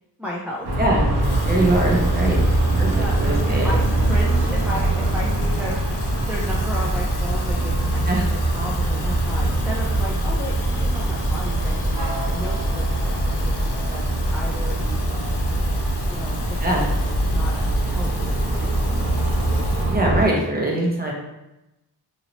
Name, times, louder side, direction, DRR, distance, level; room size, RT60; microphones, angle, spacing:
voice 1, 0.2-0.7 2.9-8.0 8.3-11.8 12.3-14.0 14.3-15.0 16.1-16.6 16.9-19.1, equal, 5° right, -4 dB, 0.4 m, -34 dB
sound 1, 0.6-20.3, right 1 dB, 70° right, 0.8 m, -22 dB
Water tap faucet / Fill (with liquid), 0.7-20.5, left 5 dB, 85° left, 0.5 m, -40 dB
voice 2, 1.5-2.4 2.8-3.7 8.1-8.3 16.6-16.9 19.9-21.1, right 1 dB, 25° right, -2 dB, 0.8 m, -22 dB
2.9 x 2.8 x 2.8 m, 0.94 s
wide cardioid pair, 90°, 40 cm